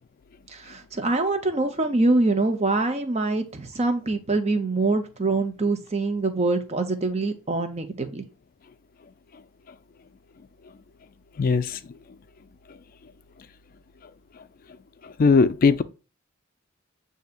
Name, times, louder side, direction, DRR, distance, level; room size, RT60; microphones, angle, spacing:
voice 1, 0.5-8.3, right 2 dB, 35° right, 0.7 m, -24 dB
voice 2, 11.4-11.8 15.2-15.8, left 4 dB, 45° left, 0.4 m, -19 dB
7.9 x 2.7 x 2.4 m
head